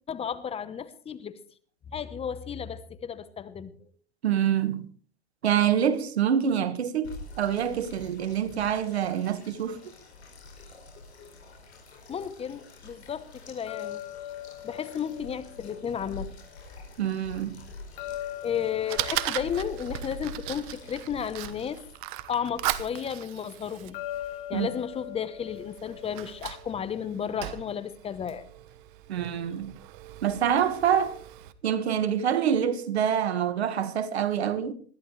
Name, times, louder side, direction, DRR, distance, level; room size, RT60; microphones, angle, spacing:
voice 1, 0.1-1.4 1.9-3.9 10.9-11.3 12.1-14.0 14.6-16.3 18.4-21.8 22.3-24.0 24.5-28.4, left 8 dB, 20° left, 1.0 m, -33 dB
voice 2, 4.2-4.8 5.4-9.8 17.0-17.6 24.5-24.7 29.1-29.7 30.2-31.2 31.6-34.7, right 9 dB, 80° right, 1.8 m, -26 dB
sound 1, 7.0-21.9, left 2 dB, 85° left, 4.8 m, -46 dB
sound 2, 13.7-16.7 18.0-21.5 23.9-27.0, left 13 dB, 55° left, 1.2 m, -41 dB
Fire, 18.1-31.5, right 15 dB, 50° right, 1.2 m, -38 dB
20.5 x 13.5 x 3.3 m
hypercardioid pair, 115°, 32 cm